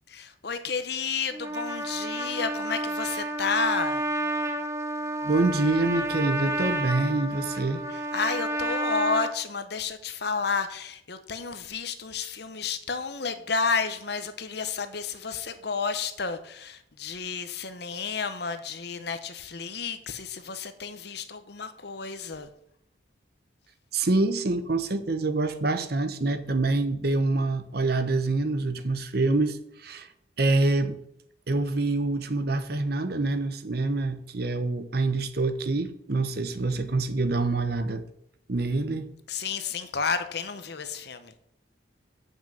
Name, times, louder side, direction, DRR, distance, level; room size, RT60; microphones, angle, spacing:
voice 1, 0.1-4.1 7.9-22.5 39.3-41.4, left 5 dB, 55° left, 0.9 m, -31 dB
Trumpet, 1.3-9.3, right 1 dB, 15° right, 0.6 m, -30 dB
voice 2, 5.2-7.8 23.9-30.1 30.4-31.0 31.5-38.0 38.5-39.1, right 2 dB, 50° right, 0.9 m, -26 dB
7.4 x 6.0 x 7.6 m
head